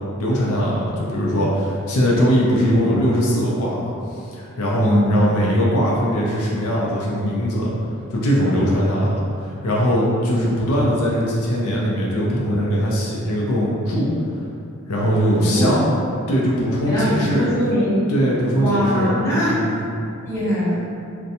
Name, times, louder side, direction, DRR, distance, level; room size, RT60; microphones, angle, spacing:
voice 1, 0.0-3.9 4.3-7.7 8.1-9.2 9.5-14.1 14.9-16.0 16.3-17.5 18.1-19.7, equal, 85° left, -5 dB, 0.5 m, -20 dB
voice 2, 4.8-5.2 15.3-15.7 16.8-18.0 18.5-19.6 20.3-20.8, equal, 15° left, -12 dB, 0.9 m, -21 dB
2.5 x 2.2 x 2.7 m, 2.5 s
head